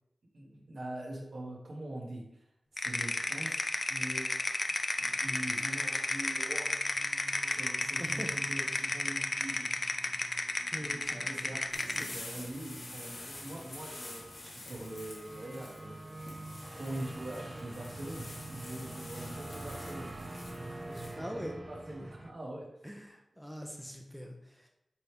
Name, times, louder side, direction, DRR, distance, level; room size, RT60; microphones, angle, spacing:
voice 1, 0.3-2.4 2.7-3.6 3.9-4.5 5.2-6.7 7.5-9.7 11.1-16.3 16.7-20.1 20.8-22.7, right 1 dB, 70° right, -2 dB, 1.8 m, -43 dB
sound 1, 2.8-12.1, left 2 dB, 45° left, 0.5 m, -33 dB
sound 2, 5.0-22.3, right 2 dB, 30° right, 0.5 m, -47 dB
voice 2, 8.0-8.3 10.7-11.5 12.0-12.1 13.5-13.8 21.2-21.5 22.0-22.1 22.8-24.7, equal, ahead, 2 dB, 0.9 m, -43 dB
sound 3, 11.7-21.1, left 2 dB, 80° left, 1.6 m, -48 dB
8.3 x 3.4 x 3.5 m, 0.83 s
wide cardioid pair, 60°, 0 cm